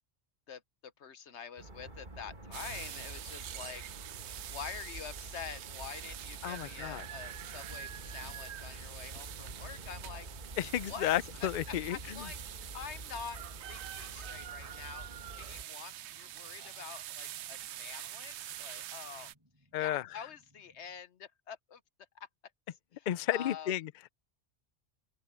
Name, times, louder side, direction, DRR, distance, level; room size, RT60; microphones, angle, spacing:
voice 1, 0.5-3.8 4.5-10.3 10.9-11.1 11.4-15.0 15.4-19.3 19.8-21.8 22.1-22.3 22.9-23.7, left 7 dB, 85° left, 1.3 m, -46 dB
sound 1, 1.6-15.6, right 2 dB, 45° right, 2.2 m, -48 dB
sound 2, 2.5-19.3, right 12 dB, 85° right, 0.9 m, -45 dB
voice 2, 6.4-7.1 10.6-12.0 19.7-20.1 23.1-24.1, left 12 dB, 60° left, 0.5 m, -32 dB
sound 3, 6.8-21.0, equal, 20° right, 5.1 m, -67 dB
open air
omnidirectional pair, 1.1 m